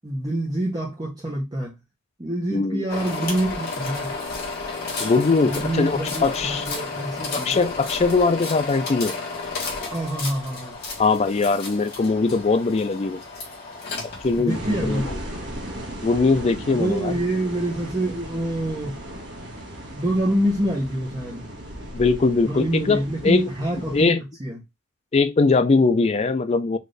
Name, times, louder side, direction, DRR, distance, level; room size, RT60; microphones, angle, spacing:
voice 1, 0.0-1.8 2.2-4.1 5.5-7.6 9.9-10.8 14.4-15.1 16.7-19.0 20.0-21.5 22.4-24.6, right 1 dB, 20° right, 0.8 m, -26 dB
voice 2, 2.5-2.8 5.0-6.7 7.3-9.1 11.0-13.2 14.2-15.2 16.0-17.1 21.9-23.5 23.9-24.2 25.1-26.8, left 4 dB, 30° left, 0.3 m, -21 dB
sound 1, 2.9-14.5, left 4 dB, 45° left, 1.5 m, -32 dB
sound 2, 14.5-24.1, right 1 dB, 50° right, 1.5 m, -36 dB
4.1 x 2.6 x 3.2 m
head